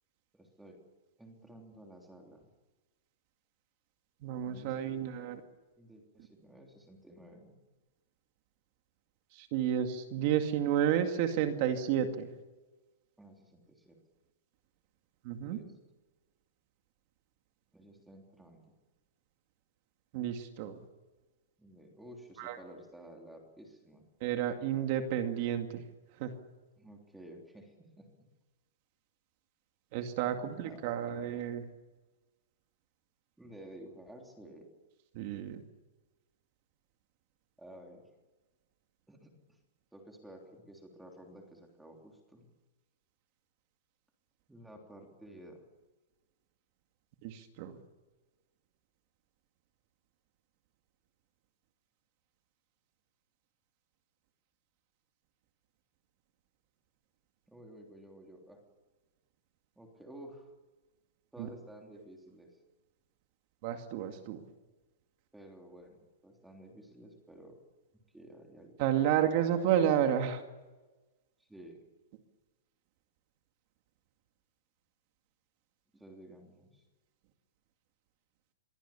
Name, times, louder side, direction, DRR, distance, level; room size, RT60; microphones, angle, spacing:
voice 1, 0.3-0.8 1.2-2.4 4.4-5.0 5.8-7.5 13.2-14.0 15.4-15.7 17.7-18.7 21.6-24.1 26.8-28.2 30.0-31.0 33.4-34.7 37.6-38.1 39.1-39.3 39.9-42.5 44.5-45.6 57.5-58.6 59.8-60.5 61.3-62.5 65.3-67.5 68.1-68.7 71.4-71.8 75.9-76.8, right 1 dB, 5° right, 1 dB, 3.3 m, -53 dB
voice 2, 4.2-5.4 9.3-12.3 15.2-15.6 20.1-20.8 22.4-22.6 24.2-25.8 26.2-26.3 29.9-31.6 35.1-35.6 47.2-47.8 61.4-61.5 63.6-64.4 68.8-70.4, right 10 dB, 35° right, 6 dB, 2.2 m, -31 dB
26.5 x 22.5 x 7.2 m, 1.2 s
supercardioid pair, 175°, 0 cm